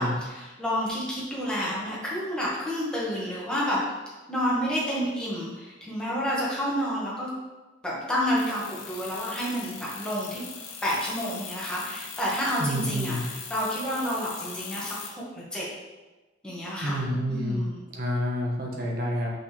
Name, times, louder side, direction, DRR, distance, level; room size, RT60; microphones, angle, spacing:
voice 1, 0.0-3.8 4.3-7.3 7.8-10.4 10.8-15.7 16.4-17.0 17.3-17.8, equal, 5° left, -7 dB, 1.8 m, -29 dB
sound 1, 8.4-15.1, left 5 dB, 85° left, 1.0 m, -40 dB
voice 2, 12.6-13.2 16.8-17.6 17.9-19.3, equal, 50° right, -2 dB, 1.3 m, -28 dB
6.1 x 5.7 x 3.4 m, 1.2 s
head